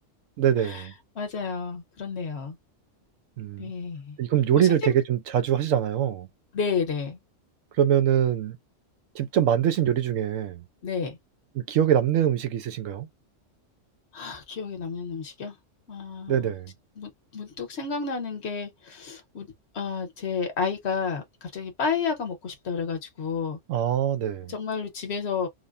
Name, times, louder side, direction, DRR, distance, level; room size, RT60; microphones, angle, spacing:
voice 1, 0.4-0.9 3.4-3.7 4.2-6.3 7.8-8.6 9.1-10.6 11.6-13.1 16.3-16.7 23.7-24.5, right 10 dB, 90° right, 1.1 m, -23 dB
voice 2, 1.1-2.6 3.6-4.2 4.5-4.9 6.5-7.2 10.8-11.2 14.1-15.6 15.9-16.5 17.0-19.5 19.7-23.6 24.5-25.5, left 5 dB, 60° left, 1.3 m, -31 dB
3.8 x 2.1 x 2.4 m
omnidirectional pair, 1.3 m